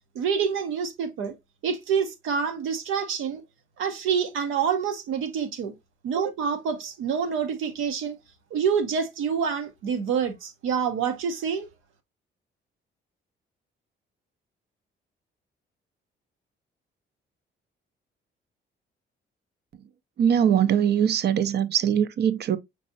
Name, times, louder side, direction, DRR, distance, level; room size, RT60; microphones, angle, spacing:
voice 1, 0.1-1.3 1.6-3.4 3.8-5.7 6.0-8.2 8.5-11.7, right 6 dB, 85° right, 0.9 m, -27 dB
voice 2, 20.2-22.6, right 9 dB, 55° right, 0.5 m, -22 dB
5.3 x 3.2 x 2.6 m
cardioid pair, 90°, 20 cm